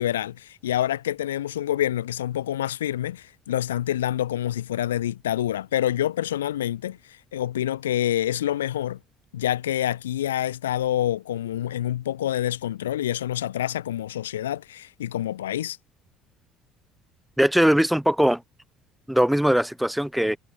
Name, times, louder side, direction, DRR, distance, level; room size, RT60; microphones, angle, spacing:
voice 1, 0.0-9.0 9.3-15.8, left 12 dB, 90° left, 3.0 m, -27 dB
voice 2, 17.4-18.4 19.1-20.4, equal, 5° right, 2.9 m, -20 dB
hypercardioid pair, 65°, 0 cm